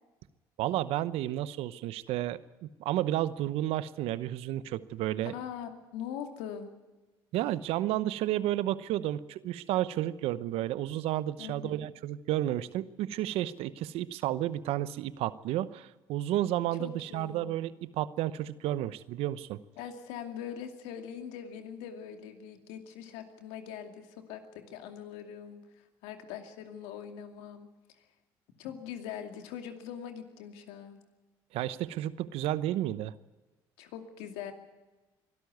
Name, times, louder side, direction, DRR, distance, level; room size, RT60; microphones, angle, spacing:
voice 1, 0.6-5.3 7.3-19.6 31.5-33.1, right 13 dB, 75° right, 16 dB, 0.9 m, -32 dB
voice 2, 5.2-6.7 11.4-11.9 16.8-17.6 19.8-27.7 28.6-31.0 33.8-34.5, left 8 dB, 85° left, 6 dB, 2.5 m, -42 dB
23.5 x 13.0 x 9.4 m, 1.1 s
supercardioid pair, 70°, 10 cm